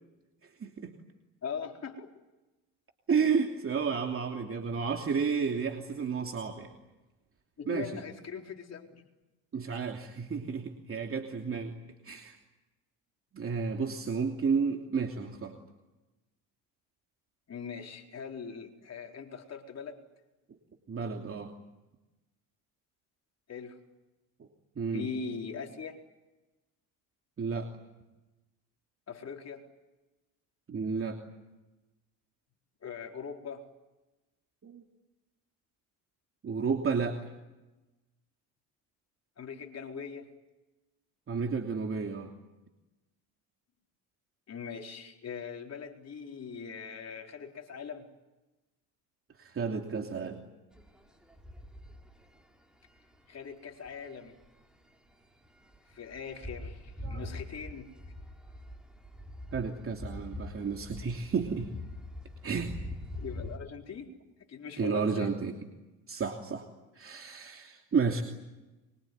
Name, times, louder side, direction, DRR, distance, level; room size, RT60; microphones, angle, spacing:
voice 1, 0.6-0.9 3.1-6.7 7.7-8.0 9.5-11.7 12.0-12.4 13.3-15.5 20.9-21.5 24.8-25.1 27.4-27.7 30.7-31.2 34.6-34.8 36.4-37.2 41.3-42.3 49.4-50.4 57.0-57.3 59.5-61.7 62.4-62.7 64.8-65.5 66.1-66.7 66.9-68.2, right 5 dB, 35° right, 3 dB, 2.9 m, -31 dB
voice 2, 1.4-2.1 7.6-9.0 17.5-20.0 23.5-23.8 24.9-26.0 29.1-29.6 32.8-33.6 39.4-40.3 44.5-48.1 53.3-54.3 55.9-57.9 63.2-64.1 64.5-65.3, left 6 dB, 40° left, 2 dB, 4.4 m, -41 dB
sound 1, 50.7-52.4 53.0-53.2 53.9-54.5 54.8-54.9 55.1-55.2 55.4-63.6, left 1 dB, ahead, 5.3 m, -43 dB
24.5 x 23.5 x 9.5 m, 1.1 s
supercardioid pair, 85°, 38 cm